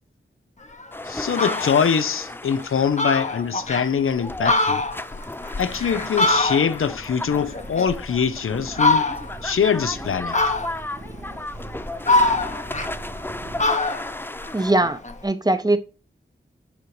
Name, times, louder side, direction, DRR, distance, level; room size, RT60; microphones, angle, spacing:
Fowl, 0.7-0.8 1.2-1.8 2.3-2.4 2.7-2.8 3.0-3.9 4.3-6.9 7.3-8.3 8.7-9.4 10.3-11.0 11.5-13.3 13.6-15.2, left 2 dB, 35° left, 0.8 m, -23 dB
sound 1, 0.9-14.7, left 1 dB, 10° left, 0.4 m, -35 dB
voice 1, 1.1-4.8 5.6-9.1 9.4-10.4, left 7 dB, 80° left, 0.5 m, -23 dB
sound 2, 5.6-13.7, right 2 dB, 85° right, 1.7 m, -41 dB
voice 2, 14.5-15.8, right 2 dB, 20° right, 0.7 m, -21 dB
7.1 x 5.0 x 3.2 m
wide cardioid pair, 60°, 21 cm